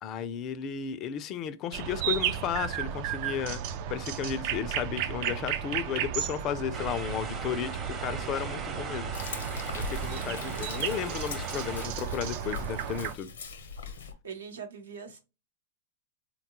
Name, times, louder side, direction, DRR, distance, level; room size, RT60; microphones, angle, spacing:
voice 1, 0.0-3.6 3.9-7.7 8.0-9.1 9.7-13.3, left 8 dB, 35° left, 0.3 m, -34 dB
sound 1, 1.7-13.1, right 9 dB, 50° right, 0.3 m, -34 dB
sound 2, 6.7-11.9, right 4 dB, 25° right, 0.7 m, -40 dB
Frying (food), 9.1-14.1, left 5 dB, 80° left, 0.6 m, -41 dB
voice 2, 10.0-10.8 14.0-15.2, right 5 dB, 85° right, 0.9 m, -44 dB
3.6 x 2.2 x 2.9 m
hypercardioid pair, 110°, 0 cm